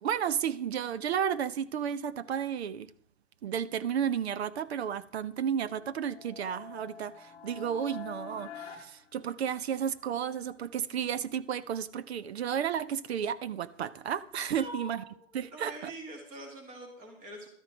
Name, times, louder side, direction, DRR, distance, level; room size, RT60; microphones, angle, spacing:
voice 1, 0.0-2.9 3.4-15.0 15.3-15.9, right 8 dB, 50° right, 0.7 m, -32 dB
sound 1, 5.6-9.9, left 7 dB, 15° left, 1.4 m, -47 dB
voice 2, 14.6-17.5, right 1 dB, 20° right, 2.2 m, -45 dB
12.5 x 9.4 x 5.1 m
hypercardioid pair, 165°, 41 cm